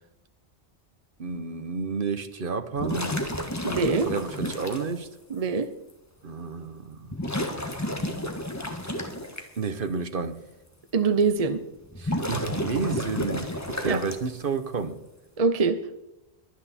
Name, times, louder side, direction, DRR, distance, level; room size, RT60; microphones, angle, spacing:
voice 1, 1.2-3.2 4.0-5.1 6.2-7.1 9.6-10.4 12.0-14.9, right 5 dB, 55° right, 11 dB, 1.1 m, -31 dB
sound 1, 2.8-4.9 5.9-6.0 7.1-9.4 11.8-14.4, left 1 dB, 15° left, 1.5 m, -31 dB
voice 2, 3.6-4.1 5.3-5.7 10.9-11.6 13.9-14.0 15.4-15.8, right 4 dB, 40° right, 11 dB, 0.8 m, -23 dB
23.0 x 9.1 x 4.3 m, 0.92 s
omnidirectional pair, 1.1 m